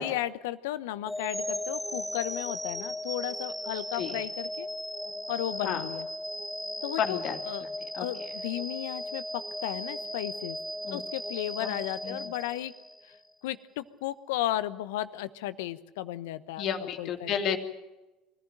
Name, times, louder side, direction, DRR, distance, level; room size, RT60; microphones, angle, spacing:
voice 1, 0.0-4.7 5.3-6.1 6.8-7.6 8.0-10.6 10.9-12.7 13.0-13.2 13.4-17.3, left 14 dB, 75° left, 14 dB, 1.0 m, -34 dB
sound 1, 1.1-13.2, left 1 dB, ahead, 1.1 m, -37 dB
voice 2, 7.0-7.4 7.9-8.0 10.8-11.0 11.6-11.8 12.0-12.2 16.6-17.6, left 8 dB, 55° left, 5 dB, 2.7 m, -31 dB
24.0 x 15.0 x 9.0 m, 1.0 s
hypercardioid pair, 70°, 0 cm